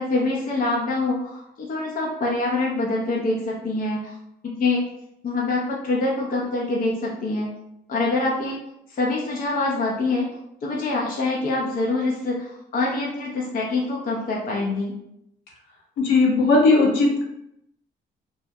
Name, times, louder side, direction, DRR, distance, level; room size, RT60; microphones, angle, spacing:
voice 1, 0.0-4.1 4.4-4.8 5.2-7.5 7.9-8.6 8.9-10.3 10.6-14.9, left 2 dB, 45° left, -3 dB, 0.5 m, -25 dB
voice 2, 16.0-17.3, left 3 dB, 75° left, -2 dB, 0.8 m, -18 dB
2.3 x 2.1 x 2.6 m, 0.81 s
cardioid pair, 90°, 20 cm